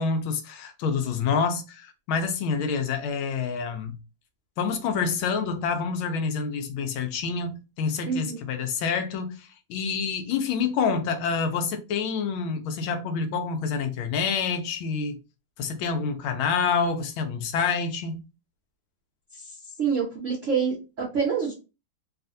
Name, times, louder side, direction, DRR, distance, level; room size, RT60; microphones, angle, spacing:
voice 1, 0.0-4.0 4.6-15.2 15.6-18.2, left 5 dB, 75° left, 1.3 m, -27 dB
voice 2, 8.1-8.4 19.3-21.5, right 6 dB, 65° right, 0.7 m, -27 dB
3.3 x 2.4 x 2.6 m
omnidirectional pair, 2.4 m